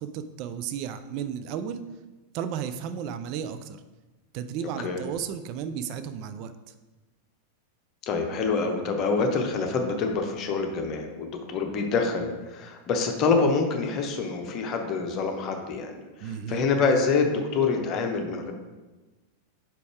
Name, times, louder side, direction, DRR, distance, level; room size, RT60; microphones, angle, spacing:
voice 1, 0.0-1.8 2.3-3.8 4.3-6.7 16.2-16.7, right 8 dB, 40° right, 10 dB, 0.3 m, -34 dB
voice 2, 8.1-18.5, left 4 dB, 35° left, 4 dB, 0.9 m, -26 dB
5.1 x 4.5 x 4.6 m, 1.2 s
figure-of-eight pair, 90°, 0 cm